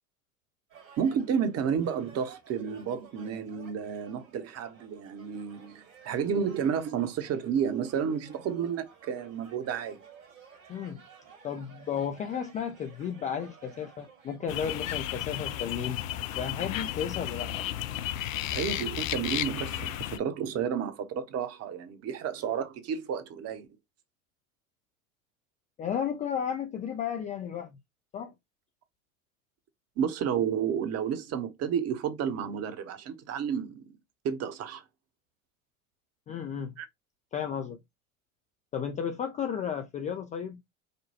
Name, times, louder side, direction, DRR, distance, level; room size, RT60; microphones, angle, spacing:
sound 1, 0.7-14.9, right 6 dB, 65° right, 2.0 m, -54 dB
voice 1, 1.0-10.0 18.5-23.7 30.0-34.0 34.2-34.8 36.8-36.9, right 7 dB, 35° right, 0.9 m, -31 dB
voice 2, 10.7-11.0 11.4-16.0 16.4-17.7 25.8-27.8 28.1-28.3 36.3-36.7 37.3-37.8 38.7-40.6, left 8 dB, 20° left, 0.3 m, -33 dB
sound 2, 14.5-20.2, left 12 dB, 70° left, 0.6 m, -33 dB
5.1 x 2.2 x 2.8 m
figure-of-eight pair, 80°, 42 cm